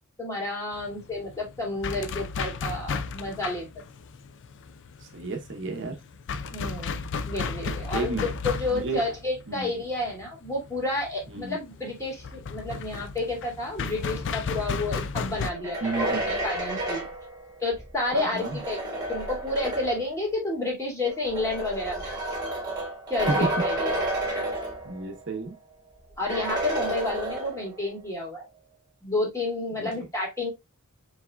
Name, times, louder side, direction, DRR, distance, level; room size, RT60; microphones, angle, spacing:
voice 1, 0.2-3.7 6.5-17.1 17.6-18.8 19.1-22.2 23.1-24.0 26.2-28.5 29.0-30.5, left 2 dB, 15° left, 2.1 m, -30 dB
sound 1, 0.7-15.5, left 5 dB, 55° left, 0.4 m, -34 dB
voice 2, 5.0-6.0 7.6-8.3 8.7-9.0 9.5-9.7 11.3-11.6 15.8-16.2 18.1-18.6 23.3-23.4 24.8-25.5 29.8-29.9, right 3 dB, 55° right, 0.8 m, -32 dB
sound 2, 15.4-20.1 21.1-25.2 25.5-25.6 26.3-27.8, right 1 dB, 20° right, 1.7 m, -31 dB
4.7 x 4.1 x 2.2 m
head